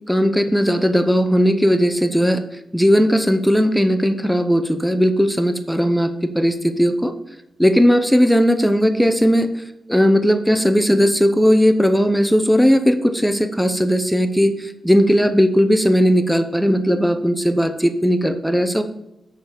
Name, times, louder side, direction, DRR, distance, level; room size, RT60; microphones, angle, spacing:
voice 1, 0.1-2.4 2.7-7.1 7.6-9.6 9.9-18.8, equal, ahead, 9 dB, 0.7 m, -17 dB
7.0 x 6.1 x 5.1 m, 0.88 s
cardioid pair, 85°, 0 cm